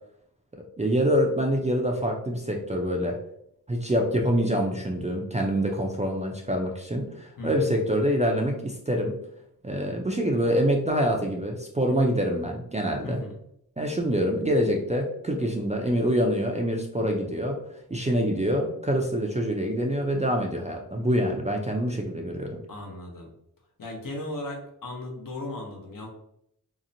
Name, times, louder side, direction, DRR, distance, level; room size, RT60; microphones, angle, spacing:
voice 1, 0.5-3.2 3.7-9.1 9.6-13.2 13.8-17.6 17.9-22.6, equal, 20° right, 1 dB, 0.4 m, -25 dB
voice 2, 7.4-7.7 13.0-13.4 22.7-23.3 23.8-26.1, left 1 dB, 60° left, 1 dB, 0.8 m, -36 dB
2.8 x 2.0 x 2.5 m, 0.73 s
cardioid pair, 55°, 38 cm